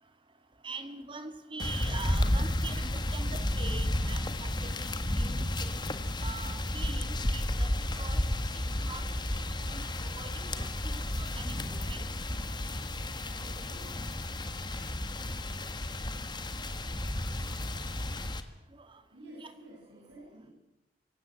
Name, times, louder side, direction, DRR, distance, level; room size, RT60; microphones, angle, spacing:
voice 1, 0.6-4.9 5.1-5.7 6.2-8.2 8.8-12.0 18.7-19.0 19.4-19.5, right 3 dB, 30° right, 8 dB, 2.0 m, -44 dB
sound 1, 1.6-18.4, left 1 dB, 25° left, 1.5 m, -32 dB
voice 2, 13.4-14.1 19.1-20.5, right 1 dB, 80° right, -3 dB, 6.8 m, -51 dB
25.0 x 17.5 x 7.8 m, 0.93 s
head